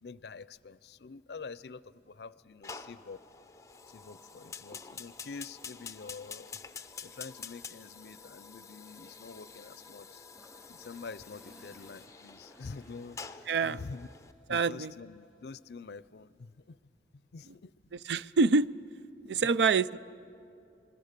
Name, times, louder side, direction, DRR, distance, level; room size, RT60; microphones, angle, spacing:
voice 1, 0.0-3.2 3.9-6.6 7.0-10.2 10.7-14.1 14.5-17.7 19.2-19.5, left 4 dB, 65° left, 18 dB, 0.5 m, -47 dB
Fire, 2.6-14.3, left 5 dB, 15° left, 0.6 m, -48 dB
Toilet flush, 10.3-15.4, equal, 10° right, 7.1 m, -62 dB
voice 2, 13.5-13.8 14.5-14.9 18.1-18.7 19.3-20.0, right 4 dB, 75° right, 17 dB, 0.4 m, -26 dB
27.5 x 21.5 x 6.7 m, 2.7 s
head